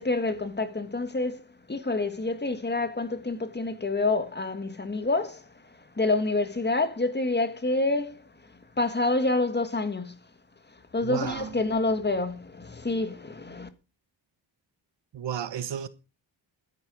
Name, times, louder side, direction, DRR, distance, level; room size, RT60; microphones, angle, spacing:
voice 1, 0.0-1.4 1.7-5.4 6.0-8.2 8.8-10.1 10.9-13.7, left 2 dB, 20° left, 1.7 m, -27 dB
voice 2, 11.0-11.6 15.1-15.9, right 9 dB, 65° right, 1.2 m, -33 dB
12.0 x 10.5 x 4.9 m
wide cardioid pair, 135°, 45 cm